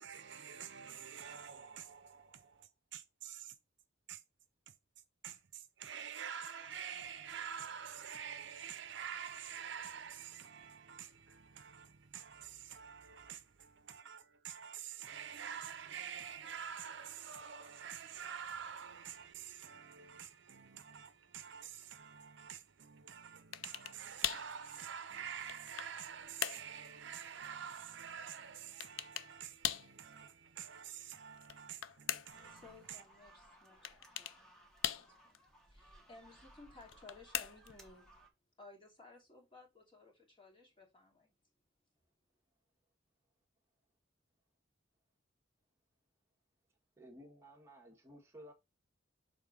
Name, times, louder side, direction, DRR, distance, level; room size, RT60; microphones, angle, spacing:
voice 1, 0.0-3.6 4.1-4.2 4.7-4.8 5.2-33.0, right 8 dB, 65° right, 0.6 m, -47 dB
sound 1, 23.5-24.0 24.2-24.5 25.2-26.0 26.4-26.7 28.8-29.3 29.6-29.9 31.3-32.5 33.8-34.4 34.8-35.4 36.8-37.8, left 11 dB, 80° left, 0.5 m, -40 dB
sound 2, 32.3-38.3, right 1 dB, 5° left, 1.4 m, -62 dB
voice 2, 32.5-34.5 34.9-35.4 35.7-38.1 38.6-41.3, left 3 dB, 25° left, 2.6 m, -58 dB
voice 3, 47.0-48.5, equal, 15° right, 1.5 m, -55 dB
6.8 x 3.8 x 5.1 m
head